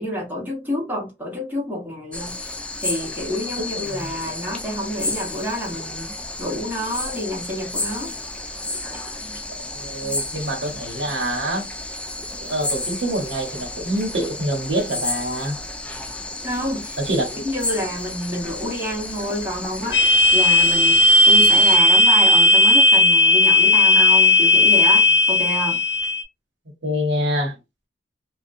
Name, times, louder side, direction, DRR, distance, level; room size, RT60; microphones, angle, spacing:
voice 1, 0.0-2.4 2.8-6.1 6.4-8.2 8.8-9.2 16.4-25.8, left 1 dB, 10° right, 1.1 m, -28 dB
sound 1, 2.1-21.8, left 2 dB, 5° left, 0.3 m, -32 dB
voice 2, 3.9-4.3 9.7-11.7 12.4-15.6 17.0-17.4 26.8-27.6, right 1 dB, 90° right, 0.9 m, -26 dB
sound 2, 19.9-26.2, left 2 dB, 75° left, 0.5 m, -15 dB
2.6 x 2.1 x 2.5 m
head